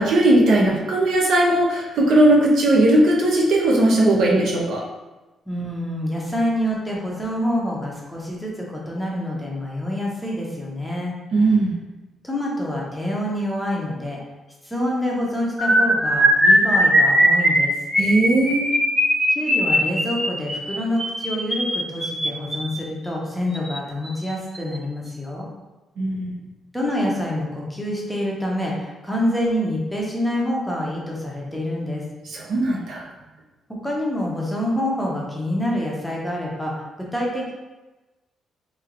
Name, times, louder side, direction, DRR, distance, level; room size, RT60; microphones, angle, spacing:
voice 1, 0.0-4.8 11.3-11.7 18.0-18.6 26.0-26.4 32.3-33.1, right 1 dB, 65° right, -2 dB, 0.8 m, -18 dB
voice 2, 5.5-11.1 11.4-11.6 12.2-14.2 14.6-17.7 19.3-25.5 26.7-32.0 33.7-37.5, left 1 dB, 5° left, -3 dB, 0.7 m, -26 dB
sound 1, 15.6-22.8 23.5-23.8 24.0-24.3 24.5-24.8, equal, 15° right, 1.2 m, -19 dB
3.3 x 3.1 x 3.7 m, 1.1 s
cardioid pair, 165°, 0 cm